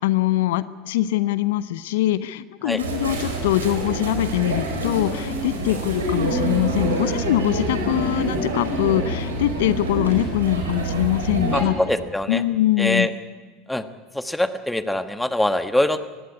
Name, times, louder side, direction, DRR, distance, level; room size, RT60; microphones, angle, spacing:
voice 1, 0.0-11.8 12.3-13.1, left 14 dB, 75° left, 15 dB, 0.7 m, -23 dB
sound 1, 2.8-11.6, right 2 dB, 85° right, 4.5 m, -26 dB
voice 2, 11.5-12.4 12.8-13.1 13.7-13.8 14.1-16.0, left 1 dB, 5° left, 10 dB, 1.4 m, -23 dB
19.5 x 16.0 x 9.6 m, 1.4 s
hypercardioid pair, 80°, 0 cm